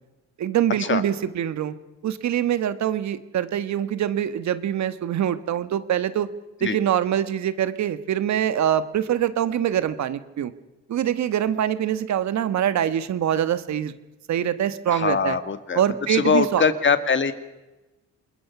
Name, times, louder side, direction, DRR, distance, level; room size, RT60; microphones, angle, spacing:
voice 1, 0.4-1.7 2.0-6.3 6.6-10.5 10.9-13.9 14.3-15.4 15.7-16.6, right 10 dB, 65° right, 13 dB, 1.4 m, -24 dB
voice 2, 14.9-15.8 16.1-17.3, left 5 dB, 40° left, 11 dB, 1.9 m, -22 dB
28.0 x 21.0 x 6.0 m, 1.1 s
cardioid pair, 90°, 30 cm